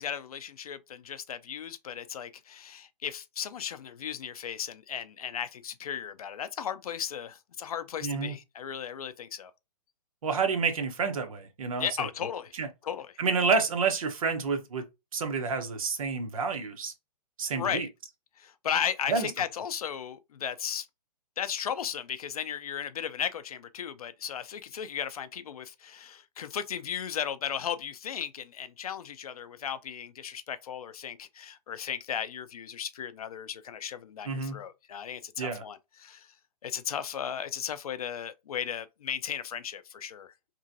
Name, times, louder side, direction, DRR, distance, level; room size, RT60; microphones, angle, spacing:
voice 1, 0.0-9.5 11.8-12.6 12.8-13.2 17.6-17.9 18.4-20.9 21.4-36.3 36.6-40.3, left 8 dB, 60° left, 0.4 m, -35 dB
voice 2, 8.0-8.3 10.2-11.9 12.6-12.7 13.2-14.9 15.1-16.9 17.4-17.9 19.1-19.3 34.2-34.6 35.4-35.6, right 5 dB, 55° right, 0.7 m, -29 dB
3.0 x 2.5 x 2.5 m
hypercardioid pair, 175°, 21 cm